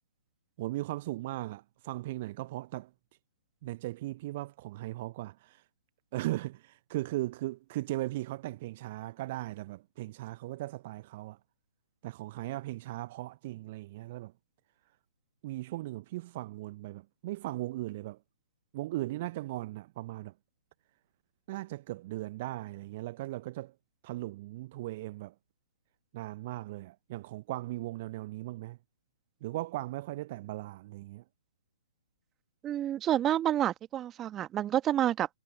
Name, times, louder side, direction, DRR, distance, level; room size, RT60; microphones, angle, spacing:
voice 1, 0.6-2.9 3.6-5.6 6.1-11.4 12.0-14.3 15.4-18.2 18.7-20.3 21.5-23.7 24.0-25.3 26.1-28.8 29.4-31.2, right 17 dB, 35° right, 1.0 m, -38 dB
voice 2, 32.6-35.3, right 11 dB, 15° right, 2.0 m, -29 dB
figure-of-eight pair, 125°, 0 cm